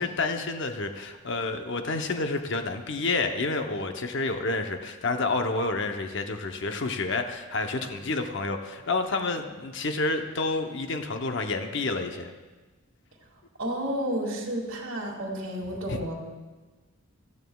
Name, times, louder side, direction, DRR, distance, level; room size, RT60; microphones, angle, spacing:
voice 1, 0.0-12.3 15.9-16.0, left 3 dB, 60° left, 5 dB, 0.8 m, -29 dB
voice 2, 13.6-16.1, equal, 65° right, -4 dB, 2.1 m, -31 dB
16.0 x 13.0 x 2.3 m, 1.3 s
head